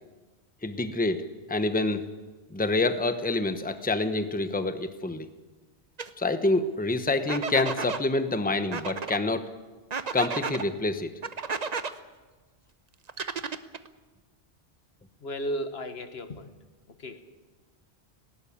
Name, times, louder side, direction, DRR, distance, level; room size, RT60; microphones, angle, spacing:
voice 1, 0.6-1.2 1.5-2.0 2.5-5.3 6.2-9.5 10.1-11.1, left 2 dB, 10° left, 10 dB, 1.0 m, -27 dB
sound 1, 6.0-6.1 7.3-8.0 8.7-9.2 9.9-10.6 11.2-11.9 13.1-13.9, right 5 dB, 40° right, 0.9 m, -32 dB
voice 2, 15.2-16.5 17.0-17.2, equal, 75° left, 9 dB, 1.6 m, -34 dB
19.0 x 17.5 x 8.8 m, 1.3 s
omnidirectional pair, 1.1 m